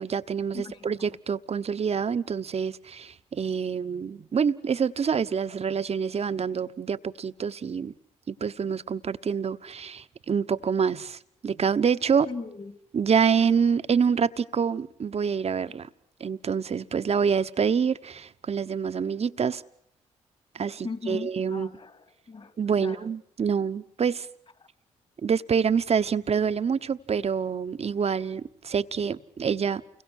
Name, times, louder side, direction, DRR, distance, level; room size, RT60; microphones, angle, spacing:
voice 1, 0.0-7.9 8.3-12.3 12.9-15.9 16.2-19.6 20.5-21.7 22.6-24.3 25.2-29.8, right 6 dB, 50° right, 1.1 m, -26 dB
voice 2, 0.5-1.0 12.2-12.8 20.8-22.5 22.8-23.1, left 4 dB, 45° left, 3.0 m, -38 dB
29.5 x 22.5 x 6.5 m
supercardioid pair, 50°, 14 cm